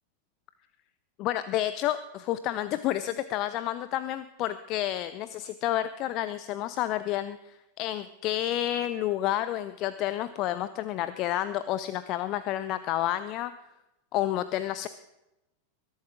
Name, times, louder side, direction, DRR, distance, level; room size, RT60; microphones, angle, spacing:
voice 1, 1.2-13.5 14.1-14.9, left 13 dB, 40° left, 14 dB, 0.5 m, -30 dB
21.5 x 11.5 x 3.7 m, 0.93 s
figure-of-eight pair, 90°, 0 cm